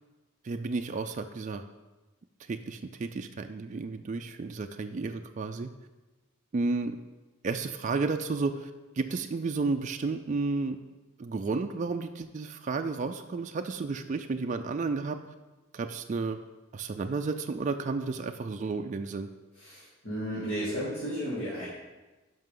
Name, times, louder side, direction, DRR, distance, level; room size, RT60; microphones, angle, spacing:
voice 1, 0.4-1.6 2.5-5.7 6.5-7.0 7.4-8.7 9.0-10.8 11.2-15.2 15.7-16.4 16.7-19.3, right 3 dB, 35° right, 6 dB, 0.3 m, -32 dB
voice 2, 19.5-21.7, equal, 55° left, -10 dB, 2.6 m, -33 dB
11.0 x 5.6 x 3.8 m, 1.2 s
head